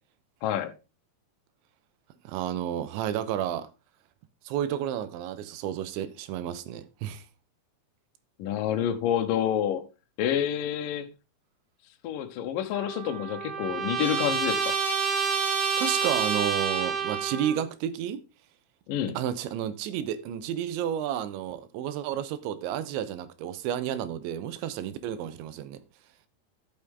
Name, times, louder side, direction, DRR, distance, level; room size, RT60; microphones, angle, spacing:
voice 1, 0.4-0.7 8.4-9.8 10.2-11.1 12.0-14.7 18.9-19.2, left 10 dB, 75° left, 2.0 m, -28 dB
voice 2, 2.2-3.7 4.5-7.2 15.8-18.2 19.1-25.8, right 10 dB, 80° right, 3.1 m, -31 dB
Trumpet, 12.7-17.6, right 6 dB, 55° right, 1.8 m, -28 dB
12.5 x 6.9 x 3.6 m
omnidirectional pair, 5.5 m